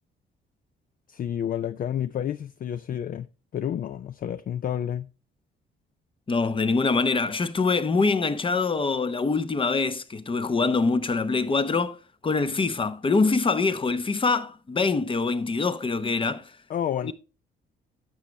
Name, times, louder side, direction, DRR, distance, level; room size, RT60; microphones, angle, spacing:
voice 1, 1.1-3.3 3.5-5.1 16.7-17.1, left 9 dB, 45° left, 0.4 m, -30 dB
voice 2, 6.3-16.5 17.0-17.1, left 4 dB, 25° left, 0.8 m, -24 dB
11.0 x 6.9 x 3.2 m
cardioid pair, 90°, 20 cm